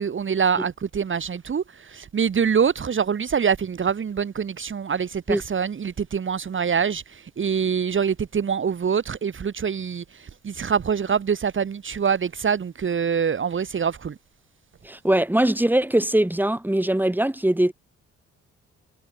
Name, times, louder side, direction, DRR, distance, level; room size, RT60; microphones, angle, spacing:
voice 1, 0.0-14.1, right 7 dB, 40° right, 2.0 m, -25 dB
voice 2, 14.8-17.7, right 1 dB, 5° right, 4.2 m, -21 dB
cardioid pair, 90°, 30 cm